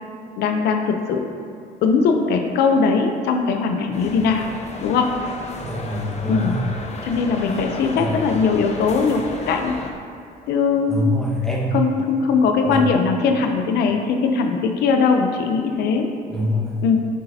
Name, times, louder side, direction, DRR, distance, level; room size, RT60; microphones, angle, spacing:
voice 1, 0.4-1.3 1.8-4.5 4.8-5.1 6.3-6.6 7.0-9.8 10.5-11.2 11.7-16.1 16.8-17.0, left 5 dB, 75° left, 4 dB, 0.7 m, -20 dB
sound 1, 3.9-9.9, left 3 dB, 40° left, 0.9 m, -34 dB
voice 2, 5.6-6.6 7.9-8.2 10.9-11.8 12.6-12.8 16.3-16.8, equal, ahead, -3 dB, 1.4 m, -24 dB
8.3 x 7.5 x 2.8 m, 2.4 s
cardioid pair, 110°, 17 cm